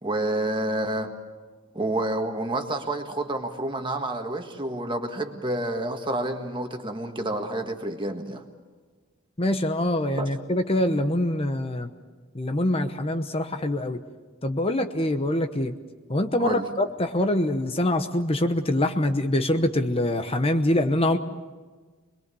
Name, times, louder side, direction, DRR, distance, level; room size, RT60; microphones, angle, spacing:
voice 1, 0.0-1.1 1.7-8.4 10.2-10.3 16.4-16.7, right 1 dB, 25° right, 5 dB, 1.7 m, -29 dB
voice 2, 9.4-11.9 12.3-14.0 14.4-15.7 16.1-21.2, left 1 dB, 30° left, 7 dB, 1.0 m, -24 dB
25.5 x 22.0 x 7.0 m, 1.4 s
head